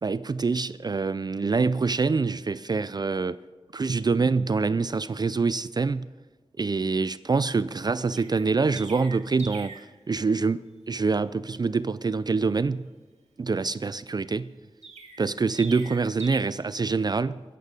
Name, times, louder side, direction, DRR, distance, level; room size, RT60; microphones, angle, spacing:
voice 1, 0.0-3.4 3.7-6.1 6.6-12.9 13.4-14.5 15.2-17.4, right 4 dB, 40° right, 0.4 m, -25 dB
Chirp tweet, 8.1-9.9 14.8-16.4, right 4 dB, 90° right, 1.8 m, -42 dB
23.5 x 8.2 x 5.1 m
wide cardioid pair, 70°, 11 cm